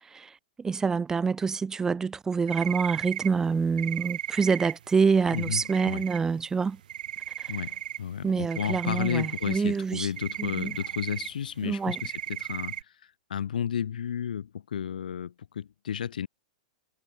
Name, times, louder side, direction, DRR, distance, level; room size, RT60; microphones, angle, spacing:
voice 1, 0.1-6.8 7.4-7.5 8.2-10.1 10.4-10.7 11.6-12.0, right 5 dB, 10° right, 0.9 m, -27 dB
sound 1, 2.5-3.3 3.8-6.2 6.5-8.0 8.3-12.8, right 10 dB, 80° right, 1.0 m, -36 dB
voice 2, 5.3-6.0 7.5-12.8 13.3-16.3, left 8 dB, 90° left, 2.2 m, -32 dB
hypercardioid pair, 140°, 4 cm